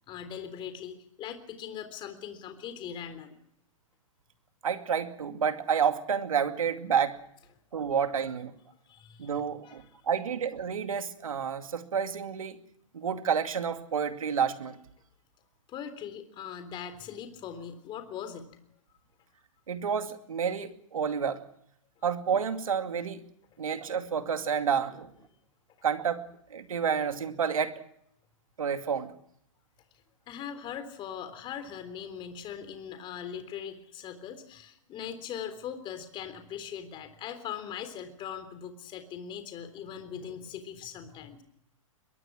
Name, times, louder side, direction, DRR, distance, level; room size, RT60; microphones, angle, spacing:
voice 1, 0.1-3.3 8.9-9.8 15.7-18.6 30.3-41.4, left 8 dB, 30° left, 9 dB, 3.6 m, -40 dB
voice 2, 4.6-7.2 7.7-8.5 9.2-12.6 12.9-14.8 19.7-21.4 22.0-23.2 23.6-25.1 25.8-26.2 26.5-27.7 28.6-29.1, right 7 dB, 80° right, 8 dB, 2.4 m, -29 dB
23.0 x 22.0 x 6.2 m, 0.72 s
hypercardioid pair, 125°, 17 cm